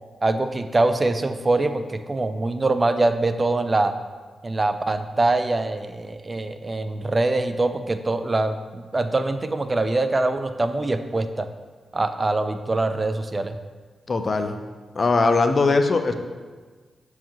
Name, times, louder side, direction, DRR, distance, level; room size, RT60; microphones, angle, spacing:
voice 1, 0.2-4.0 4.4-11.5 11.9-13.6, right 2 dB, 35° right, 9 dB, 0.4 m, -23 dB
voice 2, 14.1-14.6 15.0-16.1, left 3 dB, 50° left, 7 dB, 0.5 m, -20 dB
7.2 x 4.7 x 2.9 m, 1.4 s
supercardioid pair, 40°, 0 cm